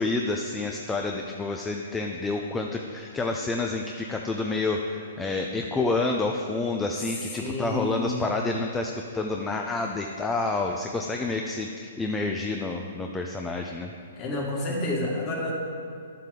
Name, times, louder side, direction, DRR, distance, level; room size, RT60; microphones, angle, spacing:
voice 1, 0.0-13.9, left 3 dB, 10° left, 2 dB, 0.5 m, -29 dB
voice 2, 7.4-8.2 14.2-15.5, left 2 dB, 30° left, -2 dB, 1.9 m, -29 dB
10.5 x 7.5 x 3.8 m, 2.3 s
hypercardioid pair, 135°, 0 cm